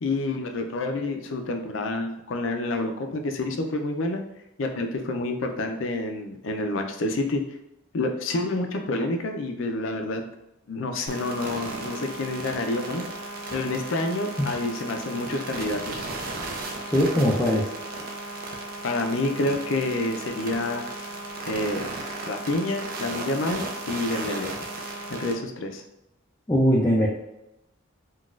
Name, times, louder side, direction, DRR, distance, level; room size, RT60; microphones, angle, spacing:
voice 1, 0.0-4.2 4.6-7.4 7.9-10.2 10.7-13.0 13.5-16.1 18.8-20.8 21.4-21.8 22.2-24.6 25.1-25.8, left 2 dB, 70° left, 5 dB, 0.5 m, -28 dB
sound 1, 11.1-25.3, right 2 dB, 45° right, 0.5 m, -35 dB
voice 2, 16.9-17.6 26.5-27.1, equal, 10° left, -5 dB, 0.4 m, -20 dB
3.9 x 2.3 x 2.4 m, 0.88 s
head